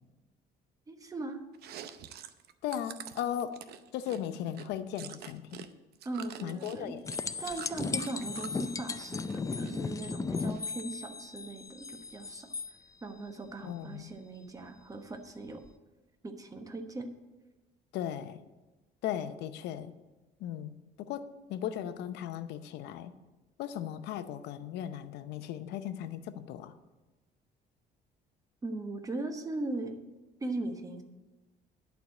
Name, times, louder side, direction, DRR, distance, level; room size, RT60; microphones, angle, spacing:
voice 1, 0.9-1.4 6.0-6.9 7.4-12.5 13.0-15.6 16.2-17.1 28.6-30.0 30.4-31.0, right 2 dB, 20° right, 5 dB, 1.1 m, -39 dB
Chewing mastication, 1.5-5.7 5.9-8.6 9.0-9.8 10.0-10.9, right 10 dB, 70° right, 0.7 m, -47 dB
voice 2, 2.6-3.6 3.9-5.7 6.4-7.1 13.6-14.1 17.9-18.4 19.0-20.0 20.4-23.1 23.6-26.7, left 10 dB, 85° left, 11 dB, 0.7 m, -37 dB
sound 1, 7.0-12.7 15.6-15.7, left 4 dB, 20° left, 0.4 m, -36 dB
11.0 x 4.7 x 8.2 m, 1.1 s
cardioid pair, 110°, 17 cm